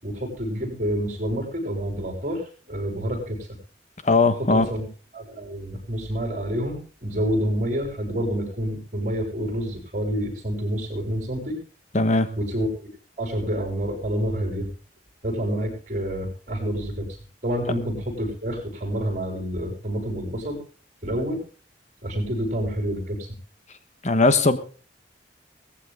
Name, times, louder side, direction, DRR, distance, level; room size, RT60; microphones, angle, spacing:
voice 1, 0.0-2.4 2.7-3.5 4.5-4.9 5.1-11.6 12.4-12.7 13.2-14.7 15.2-17.2 17.4-20.6 21.0-21.4 22.0-23.3, equal, 45° right, 3 dB, 7.8 m, -28 dB
voice 2, 4.0-4.7 11.9-12.3 24.0-24.6, left 3 dB, 40° left, 12 dB, 1.3 m, -19 dB
19.0 x 15.0 x 3.6 m, 0.37 s
head